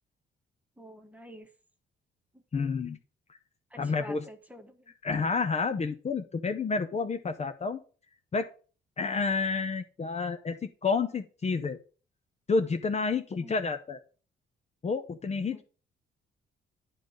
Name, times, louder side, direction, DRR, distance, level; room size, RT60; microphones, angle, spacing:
voice 1, 0.8-1.5 2.3-2.4 3.7-4.9 13.4-13.6 15.5-15.6, equal, 5° right, 6 dB, 1.3 m, -48 dB
voice 2, 2.5-3.0 3.8-4.3 5.0-7.8 8.3-8.4 9.0-11.8 12.5-14.0 14.8-15.6, left 4 dB, 35° left, 7 dB, 0.7 m, -29 dB
9.1 x 3.9 x 6.4 m, 0.38 s
cardioid pair, 90°, 20 cm